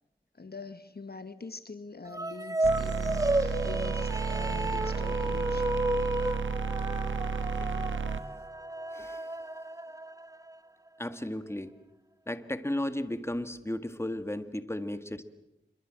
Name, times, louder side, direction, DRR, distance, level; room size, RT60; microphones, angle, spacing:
voice 1, 0.3-5.7, left 4 dB, 55° left, 12 dB, 1.3 m, -44 dB
sound 1, 2.1-10.6, right 1 dB, 15° right, 1.0 m, -32 dB
sound 2, 2.6-8.2, right 5 dB, 80° right, 1.2 m, -32 dB
voice 2, 8.9-9.3 11.0-11.7 12.3-15.2, left 1 dB, 15° left, 11 dB, 1.8 m, -34 dB
27.0 x 23.5 x 7.7 m, 0.86 s
wide cardioid pair, 50°, 20 cm